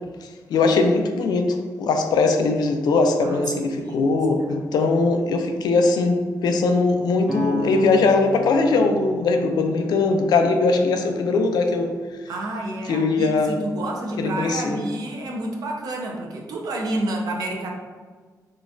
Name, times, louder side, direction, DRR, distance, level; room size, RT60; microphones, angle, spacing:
voice 1, 0.2-11.9 12.9-13.6 14.2-14.8, left 3 dB, 85° left, 5 dB, 0.3 m, -20 dB
voice 2, 3.2-4.1 4.5-4.9 12.3-17.7, right 1 dB, 65° right, 0 dB, 0.5 m, -30 dB
sound 1, 7.3-11.1, equal, 15° right, 0.4 m, -32 dB
3.8 x 2.3 x 2.4 m, 1.5 s
wide cardioid pair, 180°, 7 cm